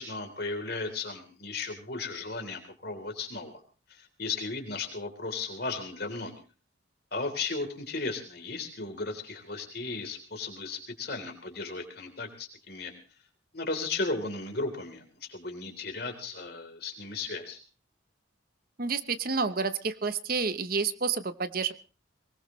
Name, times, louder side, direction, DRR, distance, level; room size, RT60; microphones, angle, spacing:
voice 1, 0.0-3.6 3.9-6.3 7.1-12.9 13.5-17.6, left 3 dB, 55° left, 5 dB, 3.5 m, -35 dB
voice 2, 18.8-21.7, right 5 dB, 50° right, 12 dB, 0.9 m, -29 dB
22.5 x 19.5 x 3.1 m, 0.36 s
head